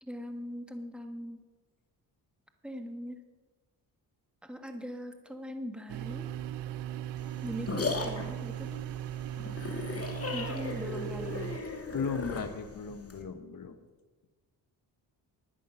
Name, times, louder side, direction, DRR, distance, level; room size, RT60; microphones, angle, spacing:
voice 1, 0.0-1.5 2.6-3.2 4.4-6.3 7.4-8.8 10.3-11.5, equal, ahead, 5 dB, 1.6 m, -41 dB
sound 1, 5.9-11.6, right 12 dB, 85° right, 0.6 m, -38 dB
sound 2, 7.2-13.2, left 4 dB, 35° left, 2.3 m, -37 dB
voice 2, 11.9-13.8, left 5 dB, 50° left, 7 dB, 1.5 m, -36 dB
11.0 x 11.0 x 5.7 m, 1.3 s
cardioid pair, 65°, 41 cm